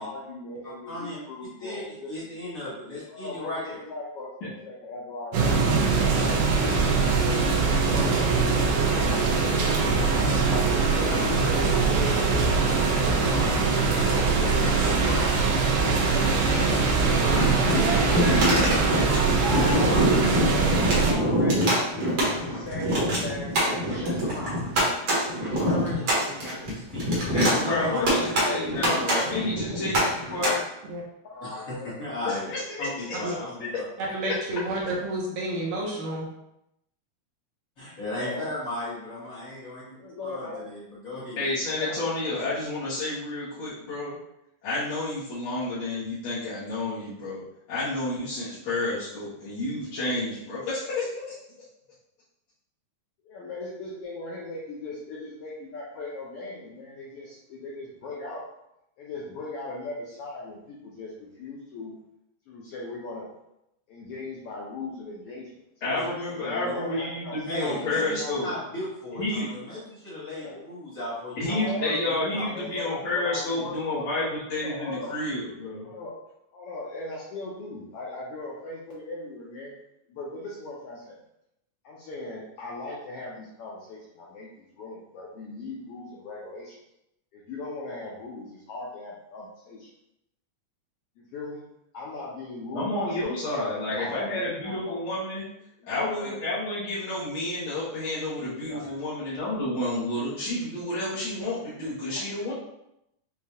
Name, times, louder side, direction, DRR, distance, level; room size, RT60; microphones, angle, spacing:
voice 1, 0.0-2.1 2.4-2.5 3.1-6.5 7.1-10.5 10.9-13.6 14.0-15.4 15.7-16.4 17.7-19.0 19.4-20.1 20.5-24.6 27.8-29.4 31.2-31.9 38.1-38.5 39.9-40.6 41.7-42.0 53.2-58.4 59.0-61.9 62.5-63.3 63.9-65.5 66.3-67.4 67.8-68.4 70.3-70.6 71.3-74.1 74.6-75.2 75.8-76.2 76.5-79.8 80.1-81.2 81.8-86.8 87.3-89.9 91.2-91.6 91.9-93.6 93.9-95.0 95.8-96.4 98.5-98.9 102.1-102.2, left 2 dB, 85° left, -5 dB, 1.3 m, -38 dB
voice 2, 0.6-1.2 1.6-3.8 16.1-17.5 18.8-20.7 24.1-24.3 25.3-28.0 28.8-28.9 31.4-33.8 37.8-39.9 40.2-41.6 65.9-66.1 67.4-68.0 68.4-72.5, left 1 dB, 45° left, -9 dB, 1.1 m, -36 dB
sound 1, 5.3-21.1, right 4 dB, 90° right, 2.3 m, -22 dB
sound 2, 17.2-30.5, equal, 55° right, 1.5 m, -25 dB
voice 3, 27.3-30.7 32.2-32.9 41.4-44.2 44.6-47.4 47.7-51.1 65.8-68.5 69.2-69.5 71.4-75.9 92.7-95.5 95.8-102.5, left 2 dB, 60° left, -11 dB, 1.5 m, -30 dB
voice 4, 34.1-36.3, right 1 dB, 70° right, -3 dB, 2.0 m, -30 dB
6.6 x 2.3 x 2.8 m, 0.82 s
omnidirectional pair, 3.4 m